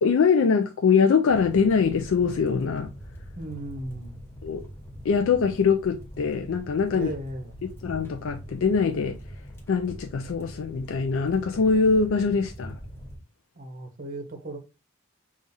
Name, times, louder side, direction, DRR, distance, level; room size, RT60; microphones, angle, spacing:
voice 1, 0.0-2.9 4.4-4.6 5.0-7.1 7.8-9.2 9.7-12.8, left 5 dB, 60° left, 0.3 m, -23 dB
sound 1, 1.3-13.2, equal, 10° left, 0.9 m, -43 dB
voice 2, 3.4-4.1 6.9-7.5 13.6-14.6, right 2 dB, 40° right, 0.8 m, -36 dB
5.5 x 2.4 x 2.6 m
head